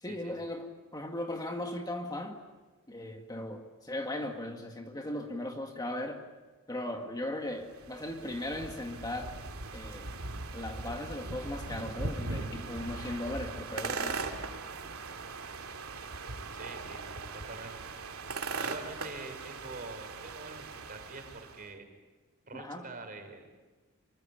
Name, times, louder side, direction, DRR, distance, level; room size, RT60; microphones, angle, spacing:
voice 1, 0.0-2.4 2.9-6.2 6.7-9.3 9.7-10.1 10.5-14.2 22.5-22.8, left 1 dB, 20° left, 3 dB, 2.1 m, -37 dB
sound 1, 7.6-21.7, right 3 dB, 85° right, 2.5 m, -39 dB
voice 2, 16.5-17.0 17.3-17.8 18.6-21.9 22.5-23.6, right 3 dB, 40° right, 6 dB, 5.2 m, -45 dB
27.0 x 24.5 x 8.7 m, 1.3 s
head